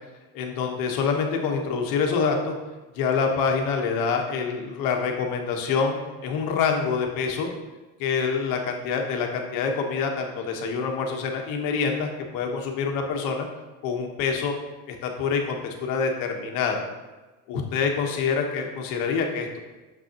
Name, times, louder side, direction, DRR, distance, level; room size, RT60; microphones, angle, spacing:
voice 1, 0.3-2.5 2.9-6.0 6.2-7.5 8.0-13.5 13.8-14.5 14.9-16.9 17.5-19.6, left 5 dB, 75° left, 3 dB, 1.2 m, -26 dB
6.7 x 6.3 x 2.9 m, 1.2 s
cardioid pair, 105°, 34 cm